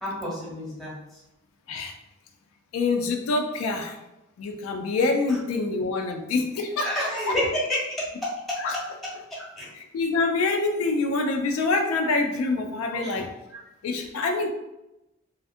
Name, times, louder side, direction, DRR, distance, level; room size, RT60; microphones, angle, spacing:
voice 1, 0.0-1.2 5.3-5.4 6.8-7.9 8.2-8.6 9.4-9.7 12.9-13.2 13.5-13.6 13.9-14.0, left 1 dB, ahead, -8 dB, 1.0 m, -30 dB
voice 2, 2.7-4.0 4.4-6.9 7.3-7.4 8.6-8.8 9.8-13.3 13.8-14.5, left 3 dB, 80° left, 4 dB, 0.3 m, -26 dB
2.5 x 2.3 x 2.5 m, 0.94 s
head